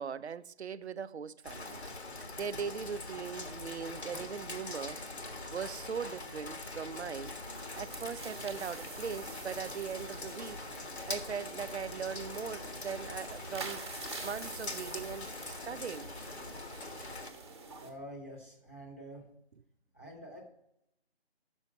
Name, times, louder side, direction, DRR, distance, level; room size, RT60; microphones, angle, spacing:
voice 1, 0.0-1.8 2.1-5.0 5.5-7.3 7.7-10.6 11.1-13.8 14.2-16.1, right 6 dB, 90° right, 0.5 m, -40 dB
Rain, 1.4-17.3, left 2 dB, 80° left, 1.4 m, -43 dB
sound 1, 4.1-4.7 5.4-5.5 7.3-7.4 7.6-8.8, left 3 dB, 45° left, 1.0 m, -57 dB
sound 2, 7.5-17.9, right 3 dB, 25° right, 1.0 m, -47 dB
voice 2, 17.8-19.3 19.9-20.5, equal, 10° left, 0.9 m, -47 dB
6.2 x 5.5 x 7.1 m
figure-of-eight pair, 165°, 32 cm